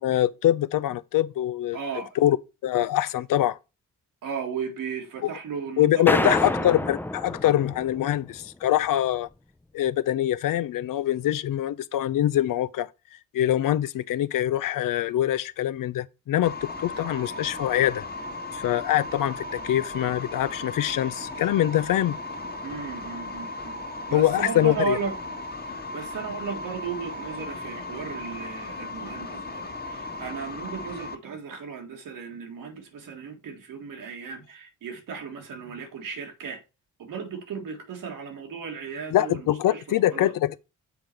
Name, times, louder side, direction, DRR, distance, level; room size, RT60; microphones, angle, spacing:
voice 1, 0.0-1.8 2.2-2.4 2.6-3.6 5.8-9.3 9.7-12.9 13.3-18.0 18.5-22.2 24.1-25.0 39.1-40.6, left 12 dB, 85° left, 0.6 m, -24 dB
voice 2, 1.7-2.1 4.2-6.7 22.6-23.8 24.1-25.2 25.7-36.6 37.0-40.3, right 6 dB, 90° right, 1.7 m, -35 dB
sound 1, 6.1-8.5, left 1 dB, 5° left, 0.5 m, -28 dB
sound 2, 16.4-31.2, left 2 dB, 30° left, 1.4 m, -36 dB
7.0 x 4.0 x 4.5 m
cardioid pair, 55°, 32 cm